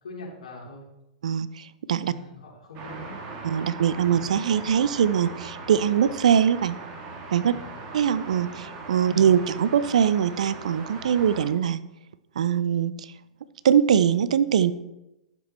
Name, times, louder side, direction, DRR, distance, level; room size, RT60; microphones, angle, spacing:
voice 1, 0.0-0.8 2.0-3.2 4.0-4.2 7.5-7.7 9.1-9.3, left 1 dB, 75° left, -3 dB, 3.3 m, -42 dB
voice 2, 1.2-2.1 3.4-6.8 7.3-7.5 7.9-11.8 12.4-13.1 13.6-14.7, right 8 dB, 70° right, 16 dB, 0.5 m, -22 dB
sound 1, 2.7-11.5, right 3 dB, 45° right, 2.3 m, -39 dB
11.5 x 7.5 x 3.1 m, 0.92 s
figure-of-eight pair, 100°, 4 cm